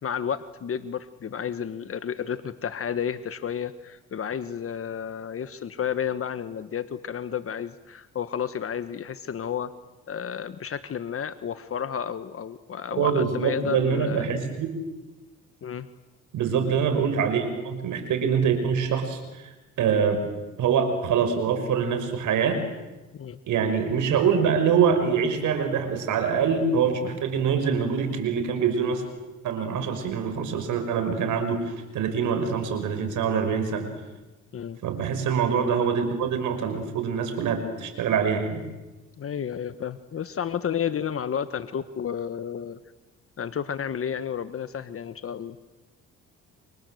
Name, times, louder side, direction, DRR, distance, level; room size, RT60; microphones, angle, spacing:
voice 1, 0.0-9.7 10.1-14.3 15.6-15.9 23.1-23.4 34.5-34.8 39.2-42.8 43.4-45.6, left 8 dB, 50° left, 11 dB, 1.2 m, -31 dB
voice 2, 13.0-14.7 16.3-19.4 19.8-20.2 20.6-22.6 23.5-29.0 29.4-33.9 34.8-38.6, right 6 dB, 80° right, 7 dB, 6.0 m, -24 dB
30.0 x 25.5 x 7.9 m, 1.1 s
cardioid pair, 90°, 30 cm